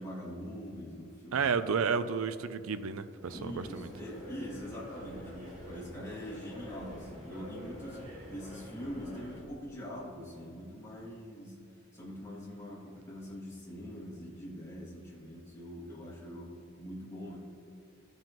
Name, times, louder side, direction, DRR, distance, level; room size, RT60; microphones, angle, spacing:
voice 1, 0.0-1.5 3.3-17.4, equal, 15° left, -8 dB, 2.2 m, -43 dB
voice 2, 1.3-3.9, right 5 dB, 80° right, 11 dB, 0.5 m, -31 dB
sound 1, 3.2-9.4, equal, 35° right, 1.8 m, -47 dB
15.5 x 5.5 x 3.0 m, 2.3 s
head